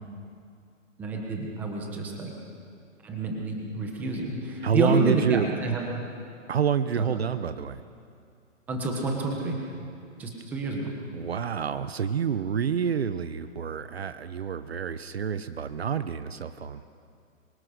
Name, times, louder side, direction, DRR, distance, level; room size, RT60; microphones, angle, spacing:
voice 1, 1.0-2.3 3.0-6.0 8.7-9.6 10.2-10.9, right 2 dB, 5° right, 0 dB, 1.2 m, -29 dB
voice 2, 4.6-5.5 6.5-7.8 11.1-16.8, right 7 dB, 50° right, 11 dB, 1.0 m, -28 dB
26.0 x 24.0 x 6.5 m, 2.4 s
hypercardioid pair, 175°, 39 cm